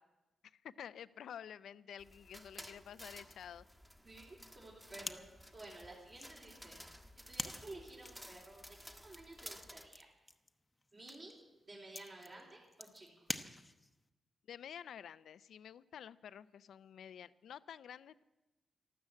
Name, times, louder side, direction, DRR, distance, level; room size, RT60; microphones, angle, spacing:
voice 1, 0.4-3.7 14.5-18.2, left 9 dB, 85° left, 17 dB, 0.5 m, -50 dB
sound 1, 2.0-9.9, equal, 5° right, 1.3 m, -54 dB
voice 2, 4.0-5.2 5.5-6.8 7.3-8.6 9.0-10.1 10.9-11.4 11.7-13.1, right 2 dB, 45° right, -5 dB, 3.7 m, -53 dB
sound 2, 5.0-14.1, left 2 dB, 15° left, 0.8 m, -48 dB
13.0 x 13.0 x 8.4 m, 1.0 s
cardioid pair, 105°, 0 cm